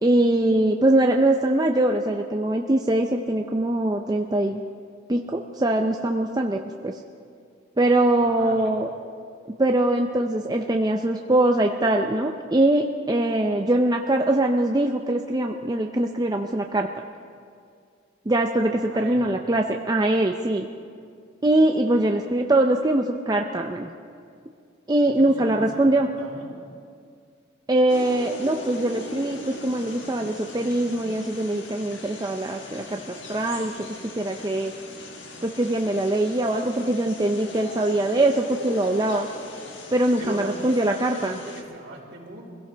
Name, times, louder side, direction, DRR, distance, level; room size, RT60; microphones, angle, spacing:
voice 1, 0.0-4.6 5.1-6.9 7.8-8.9 9.6-16.9 18.3-20.7 21.4-23.9 24.9-26.1 27.7-34.7 35.4-39.3 39.9-41.4, right 1 dB, 20° right, 3 dB, 0.5 m, -22 dB
voice 2, 8.2-8.7 18.9-19.3 25.0-26.5 40.2-42.4, right 1 dB, 65° right, -6 dB, 4.0 m, -39 dB
sound 1, 27.9-41.6, left 2 dB, 65° left, 1.5 m, -40 dB
24.0 x 16.5 x 3.4 m, 2.3 s
head